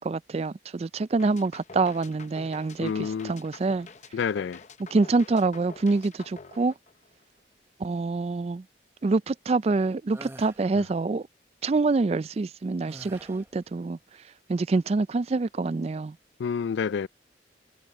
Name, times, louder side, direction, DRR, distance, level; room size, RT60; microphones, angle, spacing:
voice 1, 0.0-3.9 4.9-6.7 7.8-8.6 9.0-11.3 11.6-14.0 14.5-16.2, right 3 dB, 35° right, 0.3 m, -26 dB
sound 1, 1.2-7.4, left 4 dB, 40° left, 0.8 m, -48 dB
voice 2, 2.8-3.3 4.1-4.6 16.4-17.1, left 6 dB, 75° left, 0.4 m, -28 dB
sound 2, 10.1-10.6 12.9-13.6, right 1 dB, 15° right, 1.1 m, -45 dB
head